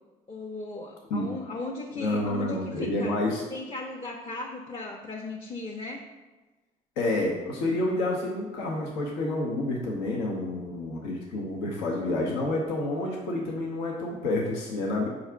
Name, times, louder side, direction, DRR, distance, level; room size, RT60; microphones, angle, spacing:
voice 1, 0.3-3.2 3.5-6.0, left 2 dB, 30° left, -1 dB, 0.6 m, -36 dB
voice 2, 2.0-3.4 7.0-15.1, left 2 dB, 85° left, -1 dB, 0.7 m, -29 dB
4.7 x 2.5 x 4.4 m, 1.2 s
supercardioid pair, 60°, 19 cm